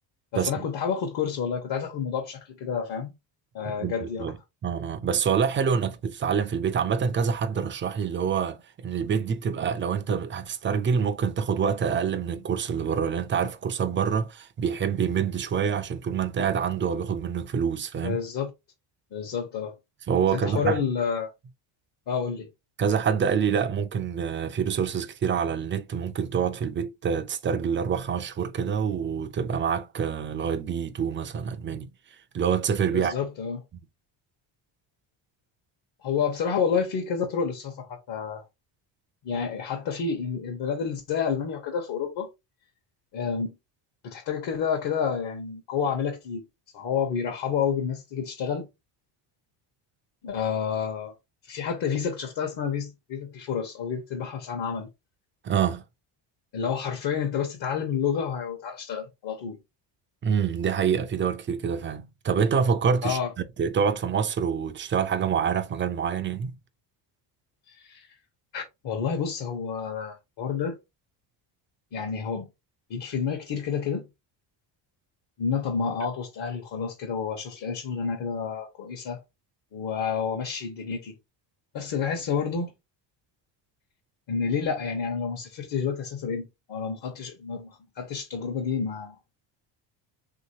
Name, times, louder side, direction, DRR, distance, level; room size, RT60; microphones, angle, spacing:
voice 1, 0.3-3.1 3.5-4.3 18.0-18.5 19.1-19.7 20.3-21.3 22.1-22.5 32.9-33.6 36.0-38.4 39.2-42.3 43.1-43.5 44.0-46.4 46.7-48.7 50.2-51.1 51.4-54.9 56.5-59.6 63.0-63.3 67.7-68.1 68.5-70.8 71.9-72.5 72.9-74.0 75.4-79.2 79.7-81.1 81.7-82.7 84.3-89.2, left 6 dB, 55° left, 1.0 m, -29 dB
voice 2, 3.8-4.4 4.6-18.2 20.1-20.8 22.8-31.9 32.3-33.1 55.4-55.8 60.2-63.2 63.6-66.5, right 7 dB, 25° right, 0.3 m, -26 dB
3.1 x 2.8 x 2.8 m
cardioid pair, 105°, 50 cm